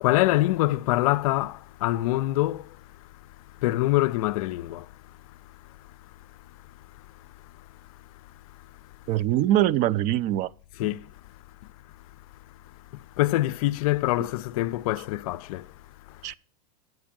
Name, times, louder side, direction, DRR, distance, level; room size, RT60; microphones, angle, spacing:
voice 1, 0.0-1.5 1.8-2.6 3.6-4.8 10.8-11.0 13.2-15.6, left 17 dB, 65° left, 0.4 m, -24 dB
voice 2, 9.1-10.5 16.2-16.3, right 13 dB, 40° right, 0.4 m, -23 dB
7.9 x 5.1 x 7.2 m
hypercardioid pair, 115°, 20 cm